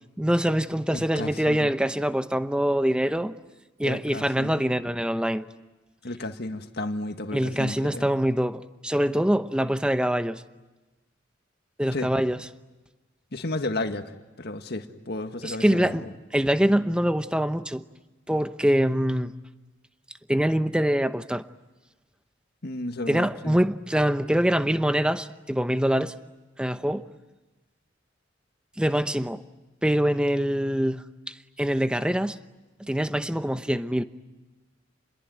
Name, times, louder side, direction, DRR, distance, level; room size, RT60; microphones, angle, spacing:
voice 1, 0.2-3.3 3.8-5.5 7.3-10.4 11.8-12.4 15.4-16.0 16.3-17.8 18.3-19.3 20.3-21.4 23.1-26.2 26.6-27.0 28.8-29.4 29.8-32.4 32.8-34.0, equal, 5° right, 0.9 m, -24 dB
voice 2, 0.9-1.7 3.8-4.6 6.0-8.1 11.9-12.1 13.3-16.0 22.6-23.6, left 2 dB, 55° left, 1.8 m, -33 dB
28.5 x 21.5 x 9.4 m
head